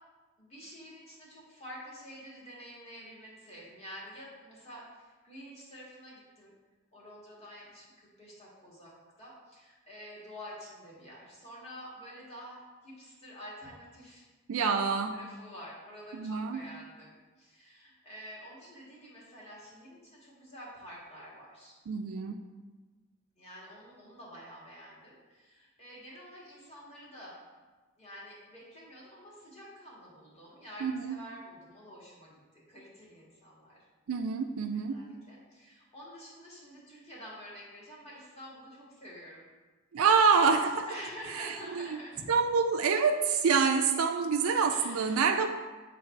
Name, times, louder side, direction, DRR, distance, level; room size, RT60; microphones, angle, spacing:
voice 1, 0.4-6.5 6.9-7.9 8.2-8.9 9.2-14.2 14.5-14.8 15.1-21.8 23.4-27.4 28.0-32.4 32.7-33.8 34.7-39.5 40.0-40.1 40.8-42.2 44.7-45.4, equal, 30° left, -6 dB, 1.8 m, -48 dB
voice 2, 14.5-15.2 16.1-16.6 21.9-22.4 30.8-31.2 34.1-35.0 39.9-40.9 41.3-41.9 42.3-45.5, right 5 dB, 85° right, 5 dB, 0.4 m, -26 dB
8.8 x 4.0 x 3.2 m, 1.3 s
head